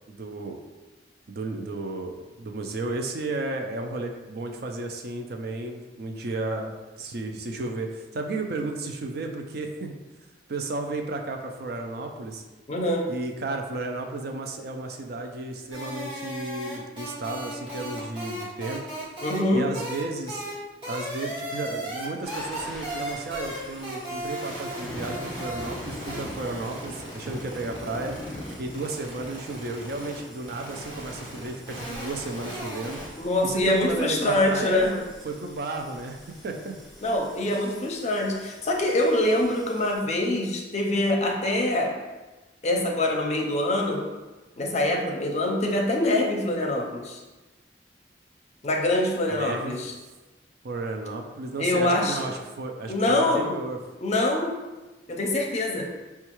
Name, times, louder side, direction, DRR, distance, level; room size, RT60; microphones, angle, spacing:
voice 1, 0.1-0.6 1.3-9.9 10.5-12.4 13.1-18.8 19.5-20.4 20.9-28.2 28.6-36.8 37.5-37.7 49.3-49.7 50.6-53.8, right 2 dB, 60° right, 3 dB, 0.4 m, -33 dB
voice 2, 12.7-13.1 19.2-19.7 33.2-34.9 37.0-41.9 42.6-44.0 44.6-47.2 48.6-49.9 51.6-52.3 52.9-53.5 54.0-54.6 55.1-55.9, left 1 dB, 40° left, 1 dB, 0.5 m, -24 dB
sound 1, 15.7-19.4 19.7-20.0 20.3-20.5 20.8-23.6 23.8-33.1, right 1 dB, 30° right, 1.5 m, -36 dB
sound 2, 22.2-40.0, left 1 dB, ahead, 0.7 m, -43 dB
5.4 x 2.3 x 3.0 m, 1.2 s
head